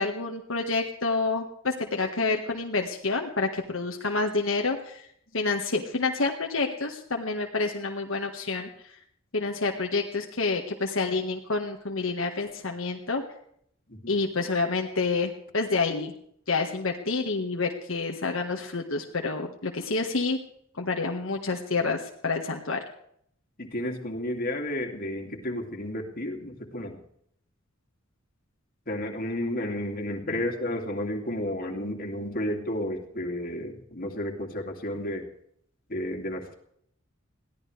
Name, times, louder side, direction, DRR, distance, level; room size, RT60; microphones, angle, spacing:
voice 1, 0.0-5.0 5.3-8.7 9.3-13.2 14.1-16.1 16.5-20.4 20.8-22.8, left 3 dB, 75° left, 2 dB, 1.7 m, -28 dB
voice 2, 23.6-27.0 28.9-35.3 35.9-36.5, left 1 dB, 45° left, 2 dB, 2.7 m, -32 dB
22.0 x 16.0 x 3.4 m, 0.68 s
head